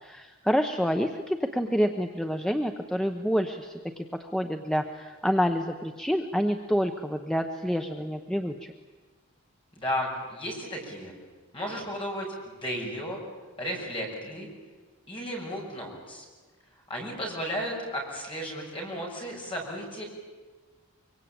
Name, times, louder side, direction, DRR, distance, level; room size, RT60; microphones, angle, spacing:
voice 1, 0.0-8.7, equal, 5° left, 5 dB, 0.8 m, -28 dB
voice 2, 9.8-11.1 11.5-12.3 12.6-13.2 13.6-14.5 15.1-16.3 16.9-20.0, equal, 25° left, -2 dB, 6.1 m, -34 dB
24.0 x 24.0 x 8.8 m, 1.4 s
head